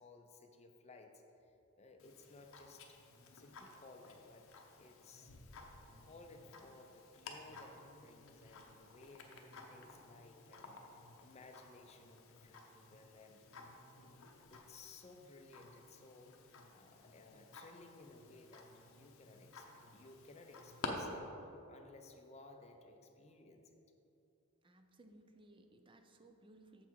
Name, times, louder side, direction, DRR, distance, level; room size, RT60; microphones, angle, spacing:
voice 1, 0.0-3.0 3.3-4.5 4.8-5.3 6.0-10.8 11.2-13.4 14.5-16.3 16.7-23.7, left 3 dB, 30° left, 4 dB, 0.6 m, -58 dB
Tick-tock, 2.0-20.9, left 4 dB, 65° left, 0.7 m, -54 dB
voice 2, 24.6-26.9, right 2 dB, 20° right, 6 dB, 0.5 m, -62 dB
7.1 x 5.8 x 4.6 m, 2.9 s
head